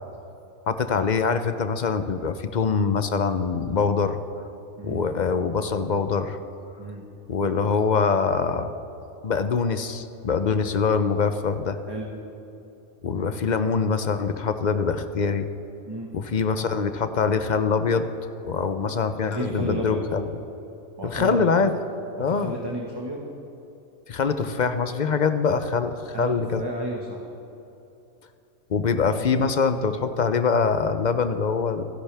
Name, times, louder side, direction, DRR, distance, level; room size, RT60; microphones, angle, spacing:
voice 1, 0.7-4.2 4.8-6.4 7.3-8.7 9.2-11.8 13.0-15.5 16.1-18.1 18.4-20.3 21.0-21.7 22.2-22.6 24.1-26.7 28.7-31.8, left 5 dB, 50° left, 9 dB, 0.5 m, -24 dB
voice 2, 19.3-20.0 21.0-21.5 22.3-23.2 26.1-26.3 26.6-27.2, right 1 dB, 20° right, -2 dB, 1.4 m, -32 dB
28.0 x 11.0 x 3.5 m, 2.8 s
omnidirectional pair, 1.5 m